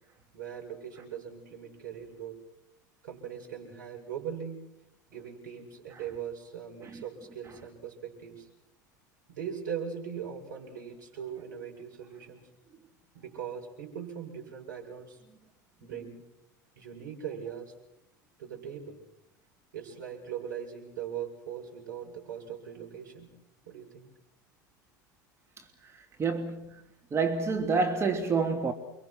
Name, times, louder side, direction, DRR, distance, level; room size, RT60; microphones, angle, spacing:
voice 1, 0.3-2.4 3.0-4.6 5.1-8.5 9.3-12.5 13.1-15.2 15.8-16.3 16.8-17.7 18.4-19.0 19.7-23.3 23.7-24.1, right 8 dB, 75° right, 7.9 m, -40 dB
voice 2, 25.6-26.8 27.1-28.7, right 4 dB, 25° right, 2.8 m, -29 dB
30.0 x 24.5 x 6.3 m
figure-of-eight pair, 75°, 10 cm